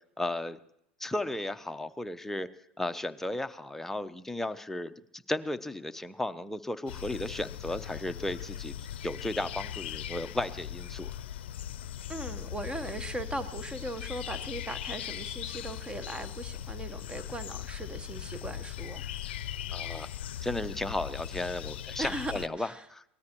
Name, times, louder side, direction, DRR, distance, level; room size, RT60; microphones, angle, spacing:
voice 1, 0.2-0.6 1.0-2.5 2.8-11.1 19.7-20.1 20.4-23.0, left 1 dB, 5° left, 0.7 m, -35 dB
sound 1, 6.9-22.5, left 10 dB, 75° left, 0.6 m, -39 dB
voice 2, 12.1-19.0 22.0-22.9, right 1 dB, 15° right, 1.1 m, -38 dB
23.5 x 18.5 x 3.0 m
hypercardioid pair, 80°, 6 cm